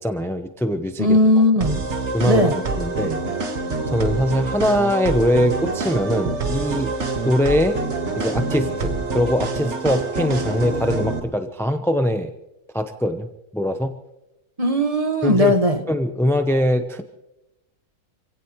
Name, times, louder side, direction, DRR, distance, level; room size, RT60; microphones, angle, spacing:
voice 1, 0.0-1.2 2.1-3.2 3.9-6.9 7.2-7.8 8.2-12.3 12.7-13.3 13.5-13.9 15.2-15.5 15.9-17.0, equal, 5° left, 7 dB, 0.4 m, -22 dB
voice 2, 1.0-1.8 2.2-2.6 14.6-15.8, left 1 dB, 25° right, 6 dB, 1.4 m, -17 dB
sound 1, 1.6-11.2, right 3 dB, 50° right, 1.8 m, -26 dB
27.5 x 16.5 x 3.1 m, 0.93 s
omnidirectional pair, 1.6 m